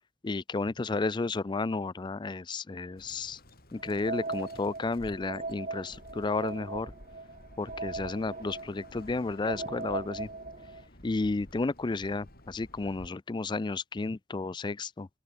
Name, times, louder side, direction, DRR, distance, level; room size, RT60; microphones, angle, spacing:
voice 1, 0.2-3.4 3.7-6.9 7.6-10.3 11.0-15.1, left 3 dB, 20° left, 0.4 m, -32 dB
Bird, 3.0-13.1, left 1 dB, 45° left, 7.0 m, -52 dB
sound 1, 3.8-10.9, right 3 dB, 35° right, 2.1 m, -39 dB
open air
head